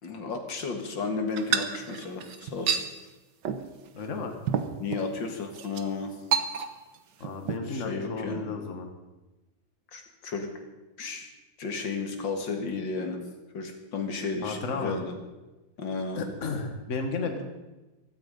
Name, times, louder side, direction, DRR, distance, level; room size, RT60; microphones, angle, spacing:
voice 1, 0.0-2.9 4.8-6.2 7.7-8.4 9.9-10.5 11.0-11.3 11.6-13.2 13.5-15.1 15.8-16.2, left 4 dB, 70° left, 4 dB, 2.4 m, -33 dB
sound 1, 1.4-2.9 3.4-3.7 4.0-4.1 4.5-5.1 5.5-5.8 6.3-7.0 7.2-7.6, right 8 dB, 65° right, 1.6 m, -29 dB
voice 2, 3.9-4.4 7.2-8.9 14.4-15.0 16.2-17.4, left 4 dB, 40° left, 5 dB, 1.8 m, -33 dB
16.0 x 13.5 x 5.4 m, 1.1 s
omnidirectional pair, 2.1 m